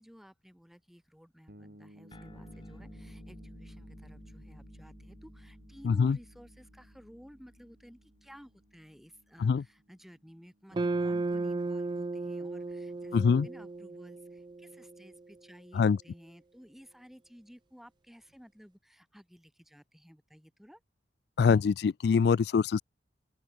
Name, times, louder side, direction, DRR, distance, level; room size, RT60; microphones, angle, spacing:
voice 1, 0.0-20.8, equal, ahead, 4.7 m, -55 dB
sound 1, 1.5-11.1, equal, 60° right, 5.6 m, -60 dB
sound 2, 2.1-8.9, equal, 30° left, 5.8 m, -52 dB
voice 2, 5.8-6.2 9.4-9.6 13.1-13.5 15.7-16.0 21.4-22.8, left 5 dB, 60° left, 0.3 m, -24 dB
sound 3, 10.7-15.1, right 3 dB, 25° right, 0.3 m, -34 dB
open air
head